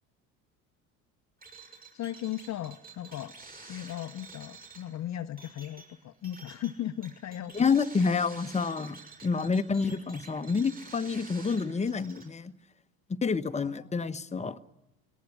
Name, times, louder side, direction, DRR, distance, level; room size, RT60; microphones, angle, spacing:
sound 1, 1.4-12.3, right 3 dB, 20° right, 6.5 m, -50 dB
voice 1, 1.9-3.3 3.7-7.6 9.3-9.6 13.6-13.9, left 12 dB, 40° left, 11 dB, 0.8 m, -37 dB
voice 2, 7.5-12.5 13.2-14.6, left 5 dB, 15° left, 9 dB, 1.0 m, -28 dB
21.5 x 18.5 x 9.7 m, 0.96 s
hypercardioid pair, 75°, 42 cm